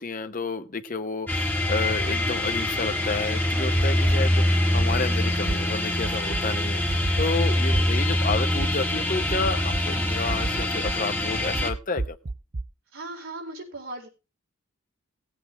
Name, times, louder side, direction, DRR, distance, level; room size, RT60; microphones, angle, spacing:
voice 1, 0.0-12.2, left 3 dB, 40° left, 9 dB, 0.8 m, -31 dB
sound 1, 1.3-11.7, left 1 dB, 10° left, 1.5 m, -24 dB
sound 2, 3.8-4.1 4.8-5.0 5.5-5.6 6.0-6.4 6.9-7.3 7.7-7.8 8.3-8.7 9.3-9.8 10.3-10.9 11.5-12.6, right 2 dB, 40° right, 0.7 m, -30 dB
voice 2, 12.9-14.1, right 2 dB, 70° right, -1 dB, 4.2 m, -37 dB
17.0 x 8.4 x 3.4 m, 0.29 s
head